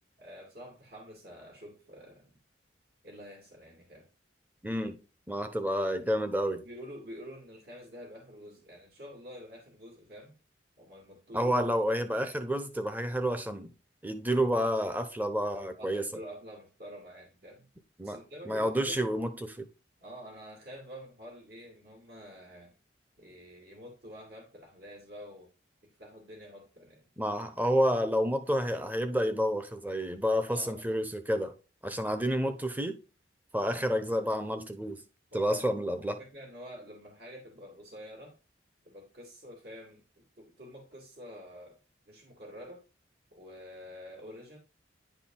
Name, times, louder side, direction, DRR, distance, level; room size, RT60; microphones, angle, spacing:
voice 1, 0.2-2.4 3.0-4.1 6.6-10.3 10.8-11.6 15.7-17.7 18.0-19.0 20.0-22.7 23.2-25.5 26.0-27.0 30.5-30.8 33.8-34.2 35.3-35.6 36.0-38.3 38.8-41.8 42.1-42.8 43.3-44.6, equal, 55° right, 2.5 m, -48 dB
voice 2, 4.6-5.0 5.3-6.6 11.3-13.7 14.0-16.1 18.0-19.7 27.2-31.5 31.8-33.0 33.5-35.0 35.3-36.2, equal, 10° right, 0.7 m, -29 dB
10.0 x 4.5 x 3.8 m
head